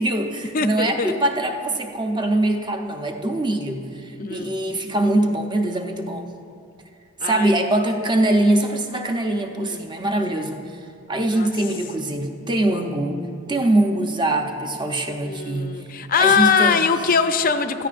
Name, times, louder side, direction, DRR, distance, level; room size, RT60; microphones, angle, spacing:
voice 1, 0.0-6.3 7.2-10.8 11.1-15.8 16.2-16.9, right 1 dB, 20° right, 4 dB, 0.7 m, -23 dB
voice 2, 0.5-1.1 3.5-3.7 4.2-4.6 7.2-7.6 9.6-9.8 11.3-11.5 15.2-17.9, left 6 dB, 40° left, 9 dB, 0.5 m, -22 dB
16.0 x 13.5 x 2.5 m, 2.4 s
head